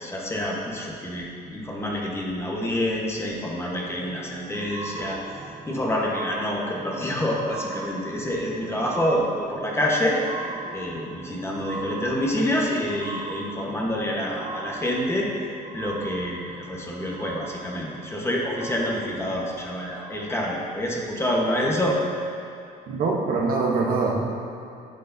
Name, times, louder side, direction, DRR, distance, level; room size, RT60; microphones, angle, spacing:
voice 1, 0.0-5.2 5.7-10.2 10.7-15.3 15.7-22.0, left 1 dB, 15° left, -3 dB, 1.2 m, -27 dB
sound 1, 3.8-20.7 21.4-21.5, right 3 dB, 35° right, 0.6 m, -40 dB
voice 2, 22.9-24.3, right 3 dB, 60° right, -2 dB, 1.1 m, -23 dB
10.0 x 6.5 x 2.7 m, 2.5 s
cardioid pair, 110°, 17 cm